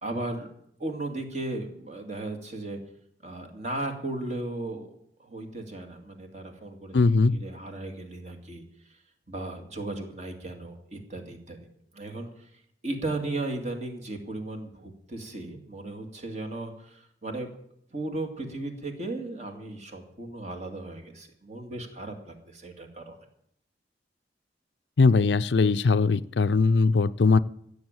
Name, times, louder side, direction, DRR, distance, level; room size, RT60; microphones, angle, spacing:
voice 1, 0.0-0.5 0.8-2.8 3.2-4.9 5.2-8.6 9.3-11.7 11.9-12.5 12.8-17.5 17.9-23.2, right 2 dB, 40° right, 4 dB, 2.2 m, -36 dB
voice 2, 6.9-7.4 25.0-27.4, left 4 dB, 80° left, 15 dB, 0.5 m, -20 dB
16.0 x 7.1 x 8.8 m, 0.72 s
head